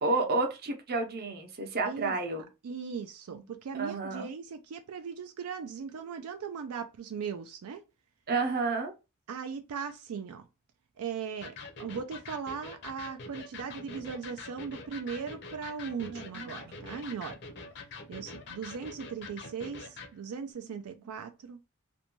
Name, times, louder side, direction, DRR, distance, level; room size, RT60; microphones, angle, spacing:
voice 1, 0.0-2.5 3.3-3.4 3.7-4.3 8.3-8.9 16.1-16.5 20.6-20.8, right 3 dB, 45° right, 0.7 m, -31 dB
voice 2, 1.9-2.2 2.6-7.8 9.3-10.4 11.0-17.4 18.1-21.6, right 6 dB, 85° right, 0.4 m, -38 dB
Electric guitar, 11.4-20.1, left 3 dB, 55° left, 0.6 m, -45 dB
2.5 x 2.2 x 2.9 m
head